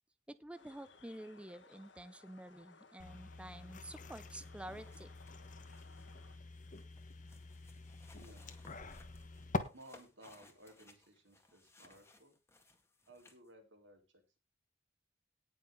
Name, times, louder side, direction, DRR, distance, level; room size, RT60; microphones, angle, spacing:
voice 1, 0.3-5.1, right 1 dB, 5° right, 14 dB, 0.6 m, -49 dB
sound 1, 0.5-6.4, left 4 dB, 80° left, 1.9 m, -62 dB
sound 2, 3.0-9.6, left 2 dB, 45° left, 1.4 m, -46 dB
sound 3, 4.5-13.5, left 2 dB, 15° left, 2.1 m, -65 dB
voice 2, 8.1-8.6 9.7-12.4 13.1-14.4, right 1 dB, 85° right, 4 dB, 4.0 m, -59 dB
18.5 x 6.6 x 3.8 m, 0.28 s
head